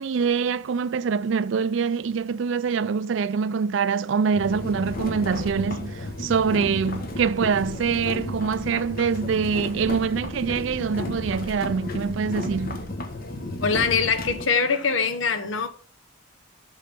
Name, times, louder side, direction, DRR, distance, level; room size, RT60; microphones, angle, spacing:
voice 1, 0.0-12.9, right 6 dB, 70° right, 0.4 m, -25 dB
sound 1, 4.3-14.5, left 1 dB, 50° left, 1.2 m, -33 dB
voice 2, 13.6-15.7, left 5 dB, 80° left, 1.0 m, -23 dB
6.6 x 5.7 x 5.2 m
head